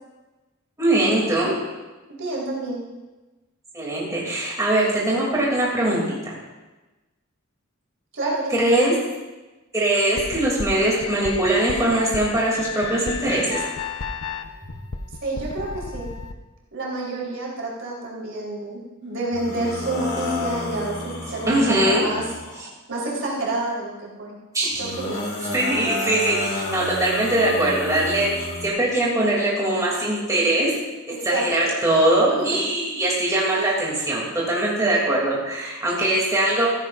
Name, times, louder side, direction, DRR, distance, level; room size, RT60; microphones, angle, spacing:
voice 1, 0.8-1.5 3.7-6.4 8.5-8.9 9.7-13.6 21.5-22.0 24.5-24.9 25.5-30.7 31.2-36.7, right 1 dB, 15° right, -5 dB, 2.8 m, -21 dB
voice 2, 2.2-2.8 8.1-8.6 15.2-16.1 16.7-22.2 22.9-24.4 24.8-25.2 31.1-31.8 32.5-32.6, right 2 dB, 60° right, -4 dB, 4.0 m, -28 dB
sound 1, 10.2-16.3, left 5 dB, 90° left, 0.8 m, -33 dB
sound 2, 19.3-22.7 24.7-28.7, left 2 dB, 50° left, 1.8 m, -31 dB
15.5 x 15.0 x 2.6 m, 1.1 s
head